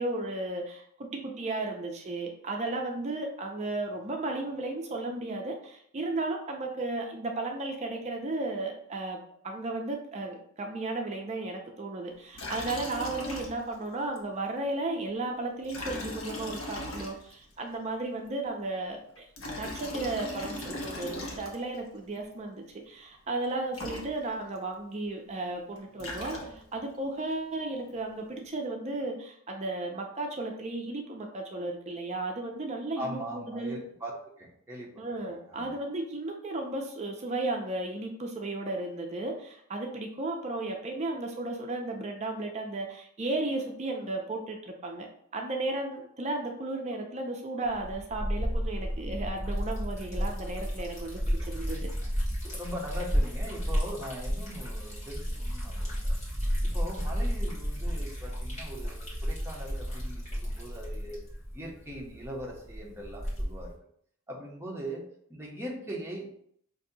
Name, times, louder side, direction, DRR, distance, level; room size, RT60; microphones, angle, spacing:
voice 1, 0.0-9.2 9.4-19.3 19.6-33.8 35.0-45.1 45.3-51.9, right 2 dB, 35° right, 2 dB, 0.5 m, -34 dB
Liquid, 12.3-13.9 14.2-14.3 15.6-17.5 19.2-21.8 23.4-23.5 23.7-24.6 25.7-26.8, left 1 dB, 75° left, 0.8 m, -39 dB
voice 2, 33.0-35.2 35.5-35.7 52.5-56.2 56.6-61.2 61.5-63.7 64.3-66.3, equal, 10° right, -2 dB, 0.8 m, -40 dB
Liquid 2, 47.6-63.7, equal, 35° left, 1.3 m, -32 dB
5.3 x 2.6 x 2.7 m, 0.67 s
head